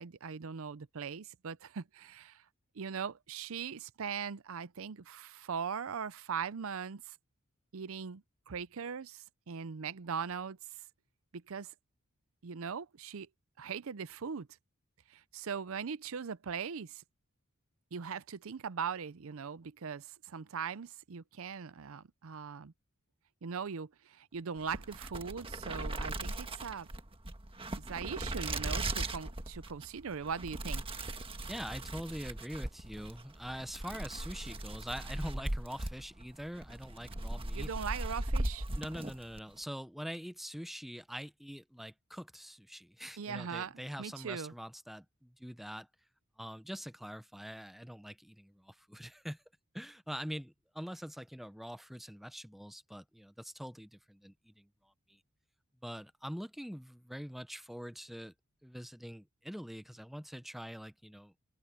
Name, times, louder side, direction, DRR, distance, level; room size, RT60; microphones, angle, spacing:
voice 1, 0.0-2.4 2.7-7.2 7.7-10.6 11.3-11.7 12.4-13.3 13.6-14.5 15.1-17.0 17.9-22.7 23.4-26.9 27.8-30.9 37.5-38.6 43.2-44.5, right 6 dB, 70° right, 0.6 m, -40 dB
sound 1, 24.6-39.5, right 1 dB, 25° right, 1.5 m, -39 dB
voice 2, 31.5-37.7 38.8-45.9 46.4-49.4 49.7-54.7 55.1-55.2 55.8-58.3 58.6-61.3, equal, ahead, 0.7 m, -44 dB
head